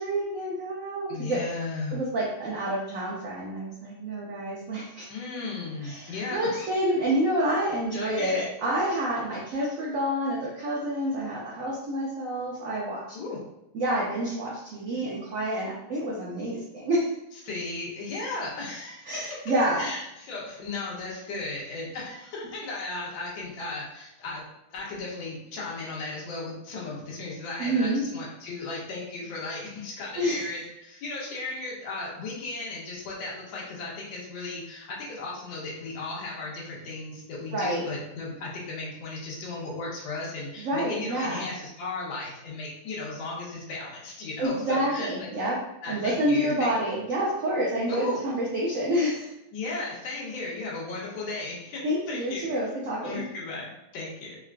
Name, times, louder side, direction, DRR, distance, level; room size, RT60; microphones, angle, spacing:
voice 1, 0.0-1.4 1.9-5.1 5.8-13.2 13.7-17.1 19.1-19.9 27.6-28.0 30.2-30.5 37.5-37.9 40.6-41.5 44.4-45.6 45.9-49.3 51.8-53.2, right 1 dB, 80° right, -4 dB, 0.7 m, -28 dB
voice 2, 1.1-2.0 5.1-6.7 7.9-8.5 13.1-13.4 17.4-19.0 19.7-24.4 24.7-45.3 45.8-46.7 47.9-48.2 49.5-52.5 53.0-54.4, left 3 dB, 80° left, -4 dB, 1.5 m, -35 dB
3.8 x 2.2 x 2.4 m, 0.87 s
omnidirectional pair, 2.1 m